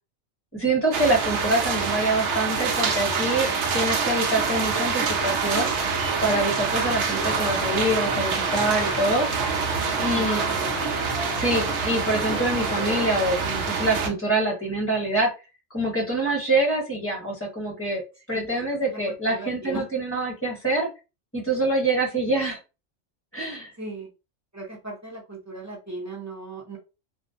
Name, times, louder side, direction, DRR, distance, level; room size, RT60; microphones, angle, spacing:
voice 1, 0.5-5.7 6.2-9.3 10.0-10.4 11.4-15.3 15.7-18.0 18.3-20.9 21.3-22.6 23.3-23.7, right 1 dB, 15° left, -1 dB, 0.9 m, -25 dB
sound 1, 0.9-14.1, right 5 dB, 80° right, 0.9 m, -26 dB
sound 2, 7.2-13.0, left 3 dB, 55° left, 0.5 m, -36 dB
voice 2, 10.0-10.9 18.3-19.9 23.8-24.1 24.5-26.8, right 2 dB, 20° right, -2 dB, 0.5 m, -38 dB
2.4 x 2.1 x 2.6 m, 0.29 s
omnidirectional pair, 1.2 m